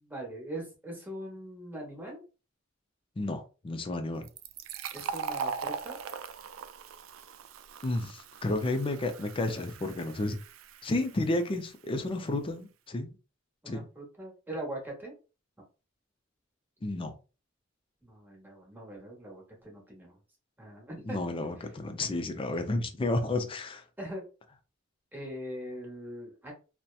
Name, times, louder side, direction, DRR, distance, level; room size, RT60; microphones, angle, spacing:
voice 1, 0.0-2.2 4.9-6.0 13.6-15.1 18.0-20.2 20.6-21.2 24.0-24.3 25.1-26.5, right 1 dB, 10° right, 1.0 m, -41 dB
voice 2, 3.2-4.2 7.8-10.4 10.8-13.1 13.7-13.9 16.8-17.1 21.1-23.8, left 2 dB, 25° left, 0.4 m, -31 dB
Fill (with liquid), 4.2-11.6, right 6 dB, 80° right, 0.3 m, -40 dB
2.7 x 2.1 x 2.3 m
head